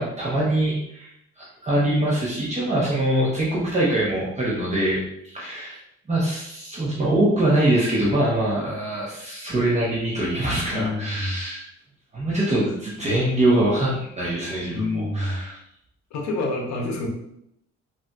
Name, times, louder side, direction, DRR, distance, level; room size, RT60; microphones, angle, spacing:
voice 1, 0.0-5.0 5.2-5.8 6.1-11.6 12.1-15.6, right 1 dB, 25° right, -7 dB, 0.8 m, -23 dB
voice 2, 10.7-11.4 14.7-15.4 16.1-17.1, left 2 dB, 65° left, 2 dB, 0.7 m, -27 dB
3.6 x 2.5 x 2.2 m, 0.76 s
cardioid pair, 90°, 30 cm